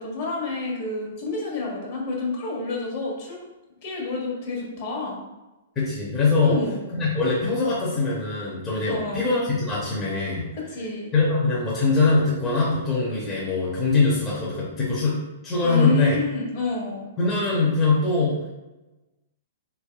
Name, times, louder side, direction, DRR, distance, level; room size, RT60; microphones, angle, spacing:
voice 1, 0.0-3.4 3.8-5.2 6.4-6.9 8.9-9.2 10.6-11.1 15.6-17.1, left 3 dB, 45° left, -3 dB, 1.2 m, -29 dB
voice 2, 5.8-6.6 6.9-10.5 11.1-16.1 17.2-18.5, left 3 dB, 15° left, -7 dB, 0.7 m, -22 dB
3.4 x 3.1 x 2.3 m, 1.0 s
hypercardioid pair, 160°, 0 cm